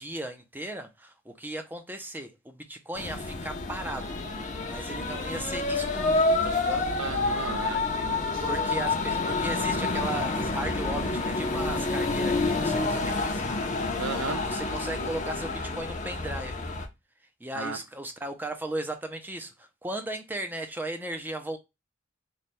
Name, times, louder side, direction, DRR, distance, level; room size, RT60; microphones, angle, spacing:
voice 1, 0.0-4.2 4.7-6.9 8.4-13.4 14.5-16.6 17.4-21.6, right 1 dB, 10° right, 0.4 m, -36 dB
sound 1, 2.9-16.9, left 3 dB, 35° left, 0.6 m, -28 dB
voice 2, 7.0-8.4 14.0-14.4 17.5-17.8, right 4 dB, 70° right, 0.6 m, -34 dB
3.2 x 2.2 x 4.1 m
head